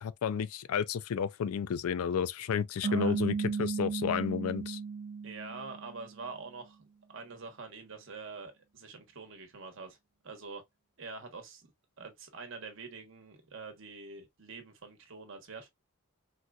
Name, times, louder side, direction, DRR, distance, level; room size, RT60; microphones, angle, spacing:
voice 1, 0.0-4.8, left 7 dB, 85° left, 0.4 m, -32 dB
sound 1, 2.8-6.2, right 5 dB, 40° right, 0.3 m, -35 dB
voice 2, 2.9-3.2 5.2-6.8 7.1-10.0 10.2-10.6 11.0-11.7 12.0-15.7, right 4 dB, 65° right, 1.0 m, -45 dB
4.1 x 2.2 x 2.3 m
head